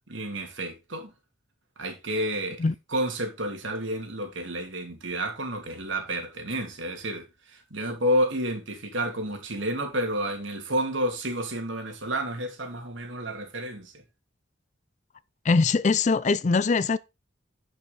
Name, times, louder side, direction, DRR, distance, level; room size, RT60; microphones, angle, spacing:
voice 1, 0.1-1.1 1.8-2.6 2.9-13.9, right 1 dB, 75° right, 2.9 m, -30 dB
voice 2, 15.4-17.0, left 4 dB, 35° left, 0.4 m, -22 dB
10.5 x 5.9 x 4.1 m
head